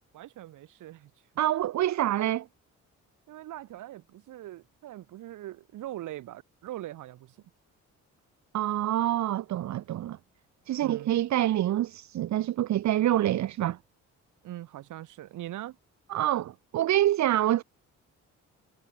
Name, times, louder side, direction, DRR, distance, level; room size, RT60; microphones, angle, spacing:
voice 1, 0.1-1.1 3.3-7.4 10.8-11.1 14.4-15.8, right 14 dB, 85° right, 4.5 m, -42 dB
voice 2, 1.4-2.4 8.5-10.2 10.7-13.8 16.1-17.6, right 13 dB, 65° right, 1.0 m, -26 dB
cardioid pair, 90°, 30 cm